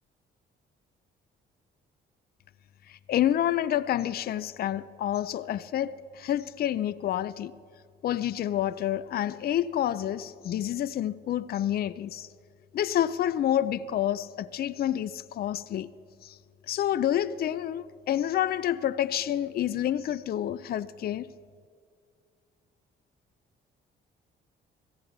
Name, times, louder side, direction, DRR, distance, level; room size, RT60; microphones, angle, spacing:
voice 1, 2.9-7.5 8.0-12.3 12.7-15.9 16.2-16.4 16.7-21.3, left 11 dB, 50° left, 0.4 m, -28 dB
17.5 x 15.5 x 3.9 m
cardioid pair, 90°, 20 cm